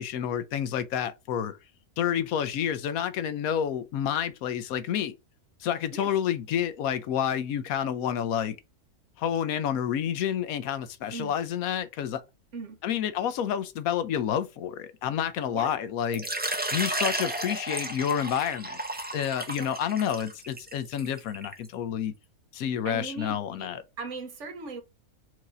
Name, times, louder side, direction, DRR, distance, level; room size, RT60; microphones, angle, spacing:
voice 1, 0.0-1.6 2.0-5.1 5.6-8.6 9.2-12.2 12.8-16.3 16.7-18.8 19.1-22.1 22.5-23.8, left 9 dB, 75° left, 1.0 m, -29 dB
Water / Liquid, 16.1-21.7, right 1 dB, 10° right, 0.5 m, -33 dB
voice 2, 22.8-23.7 24.0-24.8, right 4 dB, 55° right, 1.2 m, -38 dB
4.6 x 2.8 x 3.8 m
omnidirectional pair, 1.5 m